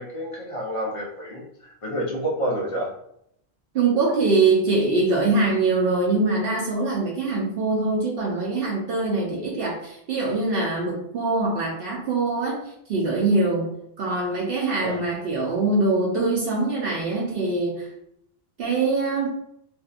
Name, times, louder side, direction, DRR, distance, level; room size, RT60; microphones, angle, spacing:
voice 1, 0.0-2.9 14.8-15.0, equal, 35° left, -3 dB, 0.7 m, -29 dB
voice 2, 3.7-17.9 18.6-19.3, right 3 dB, 70° right, -2 dB, 0.8 m, -23 dB
2.6 x 2.5 x 2.4 m, 0.74 s
omnidirectional pair, 1.0 m